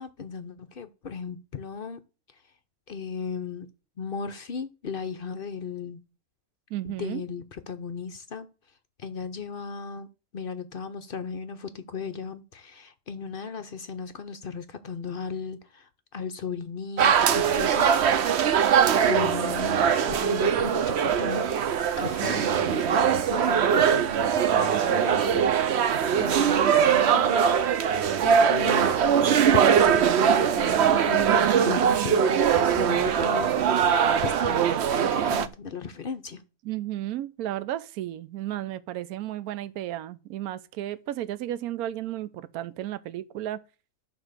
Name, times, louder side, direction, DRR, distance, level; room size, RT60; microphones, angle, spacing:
voice 1, 0.0-2.0 2.9-3.7 4.0-6.0 6.9-8.5 9.0-10.1 10.3-17.9 19.1-25.5 26.1-27.5 28.2-29.0 29.3-33.9 34.2-36.4, left 6 dB, 55° left, 0.6 m, -36 dB
voice 2, 6.7-7.2 20.1-20.7 36.6-43.6, right 13 dB, 80° right, 1.1 m, -34 dB
sound 1, 17.0-35.5, right 8 dB, 55° right, 0.8 m, -22 dB
11.5 x 4.1 x 6.5 m
omnidirectional pair, 1.6 m